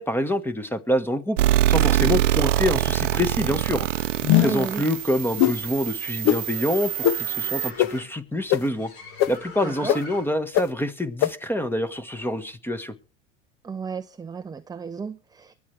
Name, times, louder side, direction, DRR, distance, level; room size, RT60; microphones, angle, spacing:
voice 1, 0.0-3.9 4.4-8.9 9.3-12.9, left 1 dB, 5° left, 1.4 m, -26 dB
sound 1, 1.4-7.7, right 13 dB, 90° right, 0.7 m, -24 dB
sound 2, 2.8-10.5, left 4 dB, 70° left, 4.1 m, -43 dB
sound 3, 4.2-4.7 5.4-5.6 6.2-6.4 7.0-7.2 7.8-7.9 8.5-8.6 9.2-9.3 9.9-10.0 10.5-10.6 11.2-11.3, left 13 dB, 50° left, 0.8 m, -19 dB
voice 2, 4.4-4.9 9.6-10.0 13.6-15.6, right 5 dB, 10° right, 0.5 m, -32 dB
23.5 x 8.2 x 3.3 m
hypercardioid pair, 95°, 36 cm